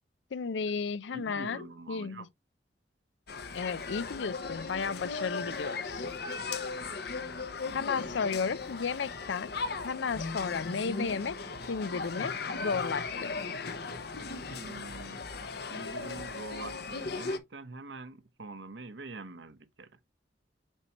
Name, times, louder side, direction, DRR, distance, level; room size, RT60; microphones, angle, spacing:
voice 1, 0.3-2.3 3.5-6.1 7.0-7.2 7.7-9.5 9.8-11.4 11.7-12.3 12.6-13.4, left 5 dB, 90° left, 0.5 m, -33 dB
voice 2, 1.1-2.3 6.5-6.7 14.6-15.3 15.7-19.9, right 3 dB, 85° right, 1.0 m, -45 dB
sound 1, 3.3-17.4, left 4 dB, 65° left, 0.9 m, -37 dB
7.6 x 4.6 x 2.9 m
head